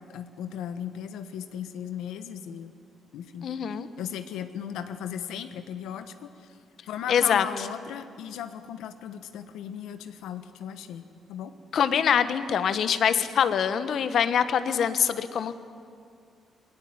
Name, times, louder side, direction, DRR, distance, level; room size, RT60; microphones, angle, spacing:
voice 1, 0.0-2.8 3.1-3.5 4.0-6.5 6.9-11.5, left 9 dB, 85° left, 9 dB, 1.3 m, -37 dB
voice 2, 3.4-3.9 7.1-7.4 11.7-15.6, left 8 dB, 65° left, 12 dB, 1.2 m, -24 dB
21.0 x 17.5 x 9.4 m, 2.3 s
cardioid pair, 90°, 0 cm